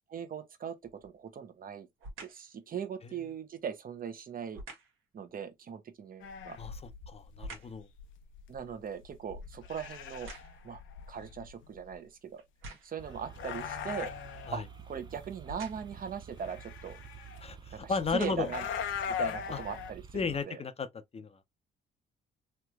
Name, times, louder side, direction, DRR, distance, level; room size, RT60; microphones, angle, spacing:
voice 1, 0.1-1.9 2.2-4.6 5.1-6.6 8.5-10.3 10.6-10.8 11.1-12.4 12.8-14.1 14.5-17.0 17.8-18.6 19.1-20.6, right 7 dB, 45° right, 0.9 m, -40 dB
sound 1, 0.8-1.2 2.0-2.5 4.5-5.0 6.4-7.9 8.3-10.8 11.5-11.6 12.4-13.1 15.4-16.0 17.0-17.2 17.9-18.7 19.3-19.4, right 2 dB, 85° right, 1.3 m, -48 dB
sound 2, 6.2-12.0 13.1-14.6 16.4-17.4 18.4-19.9, left 8 dB, 80° left, 0.7 m, -40 dB
voice 2, 7.1-7.9 14.5-14.6 17.4-18.5 19.5-19.6 20.1-20.9 21.1-21.4, left 5 dB, 30° left, 0.7 m, -34 dB
sound 3, 13.0-20.4, right 6 dB, 25° right, 0.4 m, -50 dB
3.2 x 3.1 x 2.2 m
cardioid pair, 90°, 20 cm